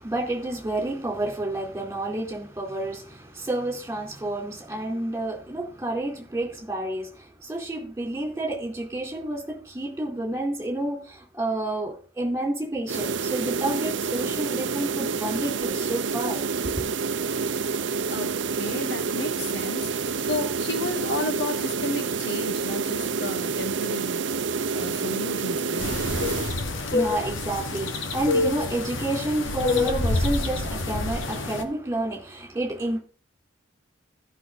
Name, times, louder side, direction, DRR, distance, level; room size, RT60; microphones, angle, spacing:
voice 1, 0.0-16.8 26.4-33.0, right 1 dB, 15° right, 3.8 m, -30 dB
sound 1, 12.9-26.6, right 5 dB, 65° right, 0.6 m, -28 dB
voice 2, 18.1-24.2 24.7-26.1, left 2 dB, 60° left, 1.6 m, -33 dB
sound 2, 25.8-31.6, left 3 dB, 80° left, 1.6 m, -27 dB
14.5 x 6.2 x 4.1 m
head